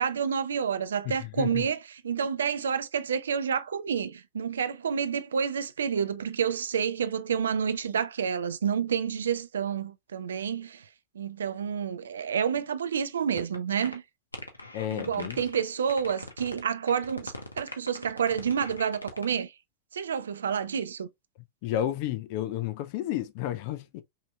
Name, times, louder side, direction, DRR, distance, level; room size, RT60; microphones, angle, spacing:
voice 1, 0.0-10.8 11.1-14.0 14.9-19.5 19.9-21.1, right 7 dB, 65° right, 0.4 m, -29 dB
voice 2, 1.0-1.7 14.7-15.4 21.6-24.0, left 12 dB, 45° left, 0.6 m, -32 dB
sound 1, 13.3-13.6 13.8-14.0 14.3-15.6 15.9-16.6 16.9-19.3, left 2 dB, 80° left, 0.8 m, -40 dB
5.5 x 2.8 x 2.2 m
figure-of-eight pair, 90°, 0 cm